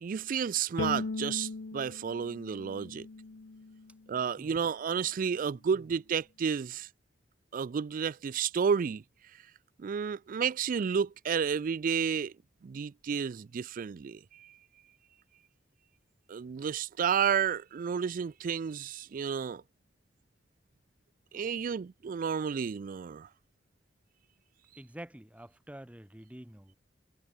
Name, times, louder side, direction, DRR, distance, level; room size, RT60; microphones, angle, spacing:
voice 1, 0.0-3.1 4.1-6.9 7.5-9.0 9.8-12.3 12.6-14.6 16.3-19.6 21.3-23.3, right 7 dB, 50° right, 0.4 m, -31 dB
Bowed string instrument, 0.8-4.0, left 3 dB, 85° left, 0.8 m, -38 dB
voice 2, 24.7-26.7, right 1 dB, 10° right, 1.2 m, -48 dB
head